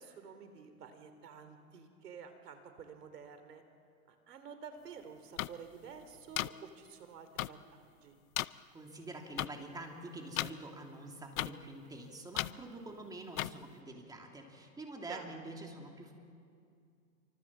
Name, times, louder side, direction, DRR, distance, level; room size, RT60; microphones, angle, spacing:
voice 1, 0.0-3.6 4.1-8.1 15.1-15.3, right 6 dB, 90° right, 8 dB, 3.4 m, -50 dB
sound 1, 5.4-5.5 6.3-6.5 7.4-7.5 8.3-8.4 9.4-9.5 10.4-10.5 11.4-11.5 12.4-12.5 13.4-13.5, left 16 dB, 60° left, 0.7 m, -33 dB
voice 2, 8.7-16.1, right 2 dB, 10° right, 2 dB, 2.8 m, -46 dB
27.0 x 24.5 x 7.4 m, 2.4 s
hypercardioid pair, 145°, 46 cm